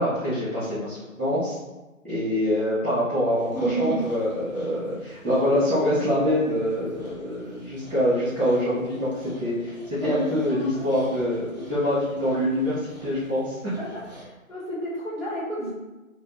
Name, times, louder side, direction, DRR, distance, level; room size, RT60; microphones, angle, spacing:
voice 1, 0.0-1.6 2.0-13.7, equal, 10° right, -14 dB, 0.7 m, -25 dB
Dog, 3.4-14.2, right 2 dB, 30° left, 0.6 m, -37 dB
voice 2, 10.4-10.9 13.8-14.0 14.5-15.7, equal, 90° left, -9 dB, 1.5 m, -33 dB
2.5 x 2.5 x 2.7 m, 1.1 s
figure-of-eight pair, 150°, 41 cm